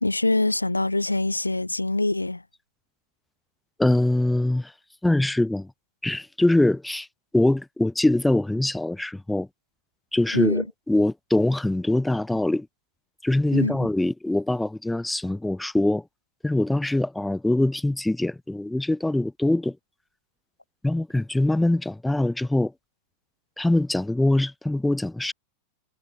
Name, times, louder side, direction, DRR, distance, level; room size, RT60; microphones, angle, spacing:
voice 1, 0.0-2.4 10.3-10.6 13.5-13.7, left 2 dB, 85° left, 3.0 m, -24 dB
voice 2, 3.8-4.7 5.0-5.7 6.0-7.1 7.3-9.5 10.1-12.7 13.2-16.0 16.4-19.8 20.8-22.7 23.6-25.3, left 1 dB, 5° left, 1.1 m, -23 dB
figure-of-eight pair, 90°, 0 cm